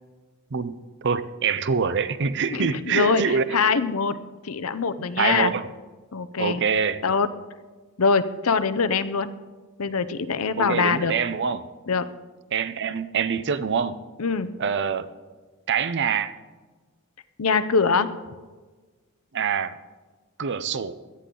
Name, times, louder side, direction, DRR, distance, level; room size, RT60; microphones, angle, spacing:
voice 1, 0.5-3.6 5.2-5.7 6.4-7.0 10.6-11.7 12.5-14.0 14.6-15.1 15.7-16.3 19.3-19.8 20.4-20.9, right 6 dB, 55° right, 13 dB, 0.6 m, -25 dB
voice 2, 2.5-4.1 4.4-5.5 6.1-6.6 7.0-7.3 8.0-9.3 9.8-11.1 11.9-12.1 14.2-14.5 17.4-18.1, left 5 dB, 70° left, 13 dB, 0.7 m, -23 dB
16.5 x 12.0 x 3.8 m, 1.4 s
head